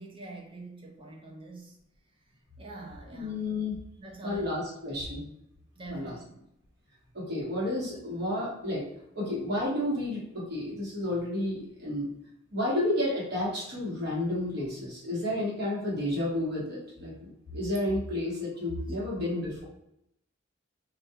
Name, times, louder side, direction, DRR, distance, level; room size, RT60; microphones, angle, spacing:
voice 1, 0.0-1.8 2.6-3.5 4.0-4.7 5.8-6.4 19.2-19.3, right 2 dB, 30° right, 0 dB, 0.6 m, -45 dB
voice 2, 3.1-3.8 4.2-5.2 5.9-6.2 7.1-8.8 9.1-12.1 12.5-19.6, left 1 dB, 60° right, -5 dB, 1.1 m, -31 dB
2.4 x 2.3 x 2.8 m, 0.80 s
head